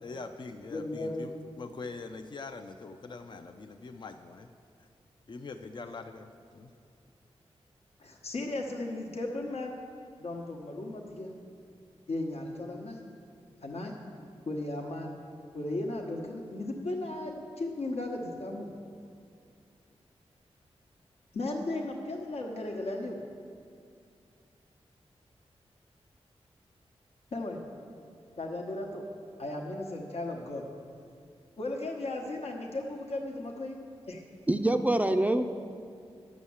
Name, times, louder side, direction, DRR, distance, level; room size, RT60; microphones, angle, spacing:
voice 1, 0.0-1.3 1.6-4.5 5.3-6.7, left 3 dB, 45° left, 6 dB, 0.5 m, -43 dB
voice 2, 0.7-1.2 8.0-9.8 10.2-11.4 12.1-13.0 13.6-13.9 14.4-15.2 15.5-18.7 21.3-23.2 27.3-27.6 28.4-29.0 29.4-30.6 31.6-33.8 34.1-34.2, left 2 dB, 70° left, 1 dB, 1.1 m, -35 dB
voice 3, 34.5-35.4, right 1 dB, 15° right, 7 dB, 0.4 m, -25 dB
9.6 x 6.3 x 7.1 m, 2.4 s
cardioid pair, 70°, 11 cm